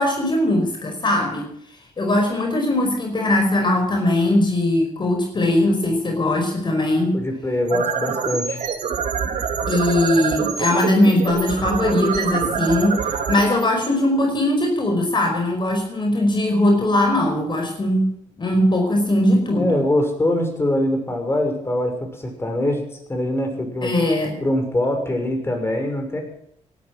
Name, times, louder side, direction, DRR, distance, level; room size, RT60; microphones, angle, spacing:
voice 1, 0.0-1.5 2.0-7.2 9.7-19.8 23.8-24.3, left 1 dB, 40° left, 3 dB, 5.1 m, -20 dB
voice 2, 7.1-8.6 19.5-22.8 23.1-24.0 24.4-26.2, left 1 dB, 20° left, 3 dB, 6.3 m, -23 dB
sound 1, 7.6-14.6, right 6 dB, 80° right, 3.8 m, -26 dB
17.5 x 12.5 x 6.3 m, 0.70 s
cardioid pair, 95°, 12 cm